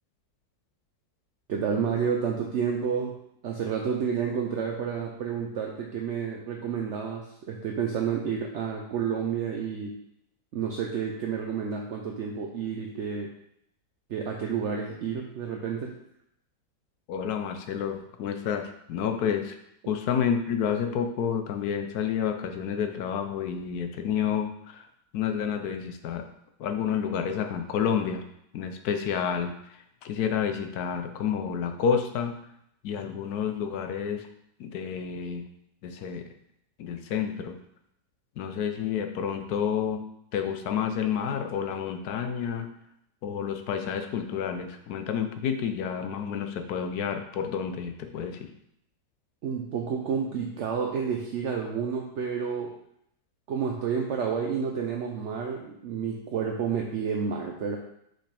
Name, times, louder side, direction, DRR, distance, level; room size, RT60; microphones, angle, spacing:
voice 1, 1.5-3.2 3.4-10.0 10.5-13.3 14.1-16.0 49.4-52.7 53.5-57.8, right 6 dB, 65° right, 1 dB, 0.7 m, -30 dB
voice 2, 17.1-19.6 19.9-24.9 25.1-26.2 26.6-28.2 28.5-32.3 32.8-34.3 34.6-35.4 35.8-36.2 36.8-37.6 38.4-40.0 40.3-42.7 43.2-48.5, left 7 dB, 70° left, 6 dB, 1.1 m, -29 dB
5.9 x 5.4 x 3.4 m, 0.75 s
omnidirectional pair, 1.9 m